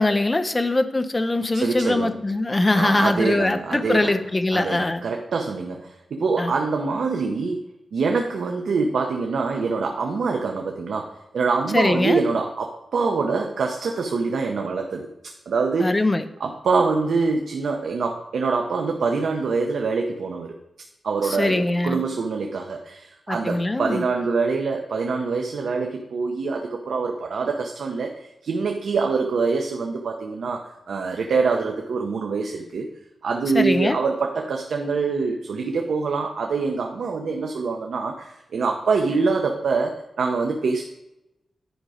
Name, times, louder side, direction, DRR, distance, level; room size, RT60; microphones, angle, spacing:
voice 1, 0.0-5.0 6.4-6.5 11.7-12.2 15.8-16.3 21.2-22.0 23.3-24.0 33.5-34.0, left 2 dB, 20° left, 9 dB, 0.5 m, -22 dB
voice 2, 1.5-2.1 2.7-4.1 4.5-7.6 7.9-15.1 15.5-16.0 16.4-20.5 21.0-32.9 33.2-40.8, right 4 dB, 75° right, 2 dB, 0.8 m, -25 dB
10.0 x 5.2 x 5.0 m, 0.91 s
wide cardioid pair, 175°, 0 cm